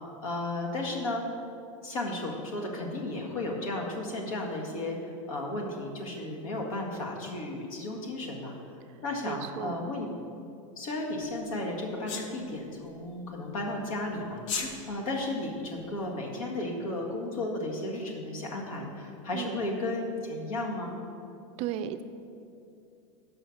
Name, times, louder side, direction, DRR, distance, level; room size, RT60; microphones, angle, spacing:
voice 1, 0.2-1.2 1.8-8.5 9.0-10.1 10.8-20.9, left 2 dB, 80° left, 0 dB, 1.7 m, -34 dB
voice 2, 9.3-9.9 19.3-19.6 21.6-22.0, right 10 dB, 40° right, 11 dB, 0.4 m, -35 dB
Sneeze, 12.1-12.3 14.4-14.7, left 5 dB, 65° left, 1.0 m, -32 dB
6.5 x 5.6 x 7.0 m, 2.6 s
supercardioid pair, 140°, 17 cm